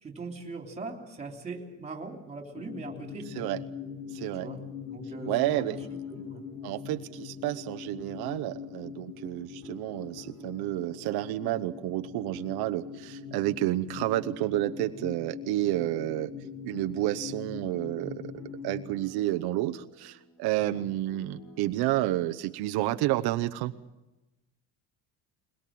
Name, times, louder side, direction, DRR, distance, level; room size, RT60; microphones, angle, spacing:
voice 1, 0.0-3.6 4.3-4.6 4.9-5.8 6.1-6.4 20.7-20.8, right 3 dB, 20° right, 3 dB, 3.3 m, -41 dB
sound 1, 2.5-18.9, left 7 dB, 25° left, 1.4 m, -42 dB
voice 2, 4.1-4.5 5.3-5.8 6.6-16.3 16.6-18.3 18.6-23.7, right 15 dB, 85° right, 7 dB, 0.9 m, -30 dB
sound 2, 5.8-23.2, left 3 dB, 85° left, 6.1 m, -51 dB
21.5 x 21.5 x 7.6 m, 1.0 s
cardioid pair, 160°, 37 cm